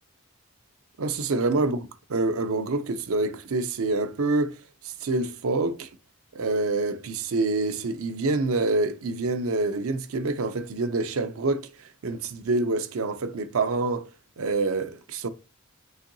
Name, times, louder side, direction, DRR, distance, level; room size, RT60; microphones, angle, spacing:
voice 1, 1.0-1.8 2.1-5.9 6.3-14.1 14.4-15.3, right 3 dB, 80° right, 0.6 m, -26 dB
5.6 x 3.7 x 2.6 m
head